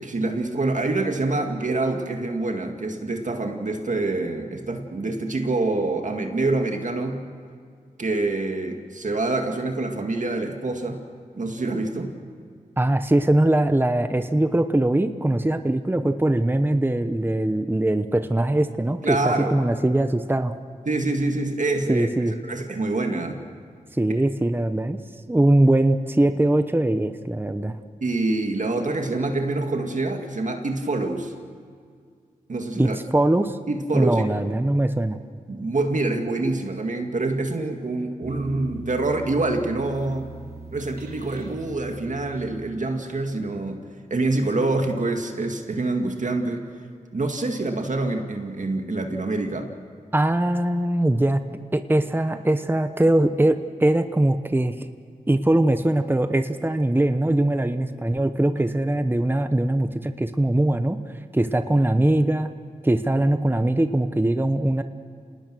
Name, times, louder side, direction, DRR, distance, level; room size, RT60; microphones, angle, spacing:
voice 1, 0.0-7.2 8.0-11.0 11.4-12.1 19.0-19.6 20.9-23.4 28.0-31.3 32.5-33.0 33.7-34.4 35.5-40.3 40.7-43.8 44.1-46.7 47.1-49.7, right 2 dB, 55° right, 4 dB, 2.1 m, -26 dB
voice 2, 12.8-20.5 21.9-22.3 23.9-25.0 25.3-27.8 32.8-33.6 33.9-35.2 50.1-51.4 51.7-54.9 55.3-61.0 61.3-62.5 62.8-64.8, right 1 dB, 15° right, 9 dB, 1.0 m, -21 dB
sound 1, 38.2-43.1, right 4 dB, 80° right, 4.0 m, -40 dB
27.0 x 19.0 x 6.3 m, 2.1 s
cardioid pair, 55°, 16 cm